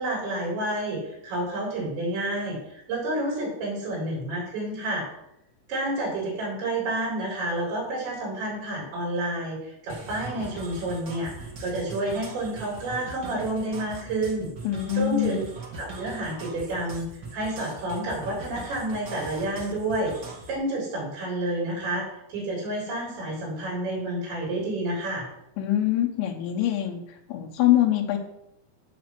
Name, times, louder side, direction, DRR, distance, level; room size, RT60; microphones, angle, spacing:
voice 1, 0.0-5.1 5.7-14.5 14.9-15.4 15.8-17.1 17.3-20.1 20.5-25.3, right 1 dB, 90° right, -5 dB, 6.4 m, -29 dB
sound 1, 9.9-20.6, right 2 dB, 70° right, 1.0 m, -41 dB
voice 2, 14.6-15.5 25.6-27.0 27.3-28.2, left 13 dB, 85° left, 3 dB, 3.7 m, -24 dB
14.0 x 6.5 x 6.2 m, 0.80 s
omnidirectional pair, 5.0 m